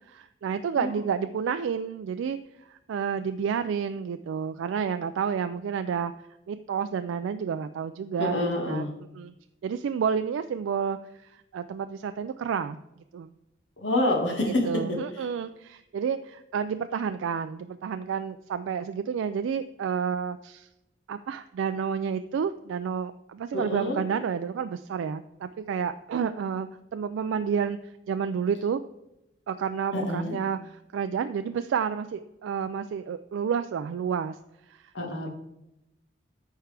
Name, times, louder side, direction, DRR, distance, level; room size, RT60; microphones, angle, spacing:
voice 1, 0.1-2.4 2.7-6.1 6.5-8.9 9.1-9.3 9.6-12.8 13.1-13.3 14.6-20.7 21.1-28.8 29.5-34.4 34.7-34.8, right 7 dB, 85° right, 9 dB, 0.3 m, -30 dB
voice 2, 8.2-8.9 13.8-14.7 15.1-15.3 23.5-24.0 29.9-30.4 34.9-35.3, left 1 dB, 75° left, 1 dB, 1.8 m, -27 dB
13.5 x 4.6 x 3.4 m, 0.89 s
head